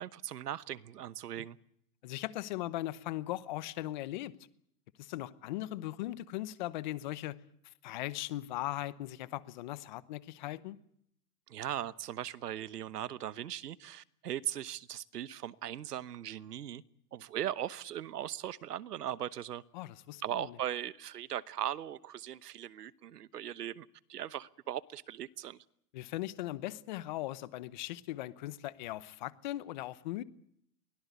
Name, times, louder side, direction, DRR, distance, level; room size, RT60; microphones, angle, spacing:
voice 1, 0.0-1.6 11.5-16.8 17.1-19.6 20.2-25.6, right 11 dB, 85° right, 1.2 m, -39 dB
voice 2, 2.0-4.3 5.0-7.4 7.6-10.8 19.7-20.6 25.9-30.2, left 15 dB, 30° left, 0.9 m, -39 dB
23.5 x 17.5 x 8.2 m
hypercardioid pair, 160°, 46 cm